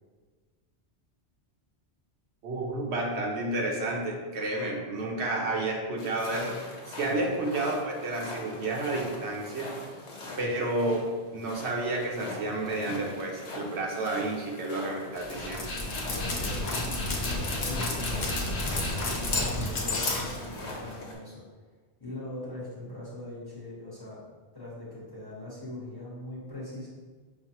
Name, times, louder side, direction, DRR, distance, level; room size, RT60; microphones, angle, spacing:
voice 1, 2.4-6.6 6.9-9.7 10.4-11.0 11.3-15.6, right 2 dB, 70° right, -1 dB, 0.9 m, -31 dB
sound 1, 6.0-21.1, left 2 dB, 85° left, 1.1 m, -43 dB
Dog, 15.2-21.0, left 2 dB, 65° left, 1.0 m, -31 dB
voice 2, 16.0-18.5 19.0-21.4 22.0-24.2 24.5-26.9, left 1 dB, 20° left, -7 dB, 1.0 m, -41 dB
5.8 x 2.2 x 2.8 m, 1.4 s
omnidirectional pair, 1.2 m